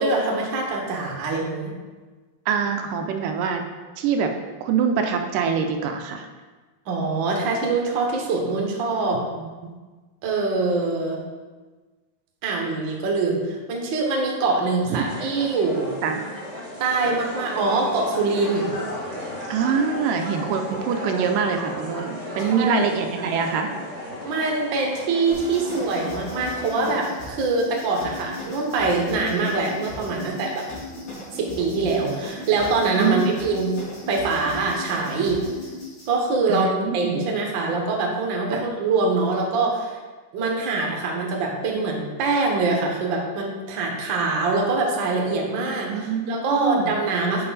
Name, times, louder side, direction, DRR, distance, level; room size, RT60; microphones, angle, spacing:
voice 1, 0.0-1.7 6.8-9.2 10.2-11.2 12.4-16.0 16.8-18.7 20.9-21.3 22.4-22.8 24.2-30.6 31.4-33.7 34.1-35.4 36.1-40.0 40.3-47.5, right 3 dB, 50° right, 0 dB, 1.5 m, -24 dB
voice 2, 2.5-3.6 4.0-4.3 4.6-6.3 9.3-9.7 14.9-15.1 16.0-16.2 19.5-23.7 33.0-33.5 36.5-37.2 38.5-38.6 45.9-47.0, right 6 dB, 85° right, 5 dB, 2.3 m, -24 dB
sound 1, 15.0-26.7, left 1 dB, 30° right, 1.6 m, -35 dB
sound 2, 25.3-36.1, left 2 dB, 70° left, 4.4 m, -37 dB
8.7 x 6.1 x 4.1 m, 1.3 s
omnidirectional pair, 3.8 m